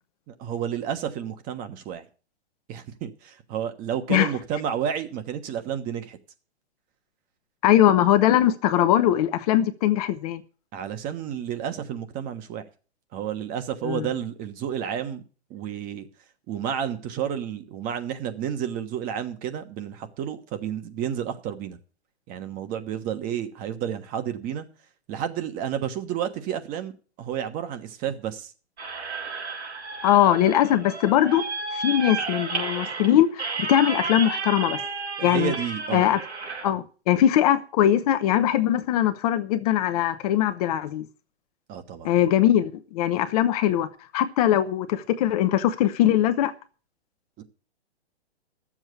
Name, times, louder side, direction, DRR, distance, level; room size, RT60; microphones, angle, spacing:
voice 1, 0.3-2.1 2.7-6.2 10.7-12.6 13.1-15.2 15.5-16.1 16.5-21.8 22.3-24.6 25.1-26.9 27.2-28.5 35.2-36.1 41.7-42.1 47.4-47.5, right 9 dB, 25° right, 1.3 m, -31 dB
voice 2, 7.6-10.4 13.8-14.1 30.0-31.4 31.7-34.8 35.2-35.5 35.9-36.2 36.6-41.1 42.0-43.9 44.1-46.5, left 11 dB, 35° left, 0.8 m, -21 dB
sound 1, 28.8-36.7, right 4 dB, 80° right, 4.9 m, -32 dB
12.0 x 7.4 x 8.1 m
hypercardioid pair, 125°, 33 cm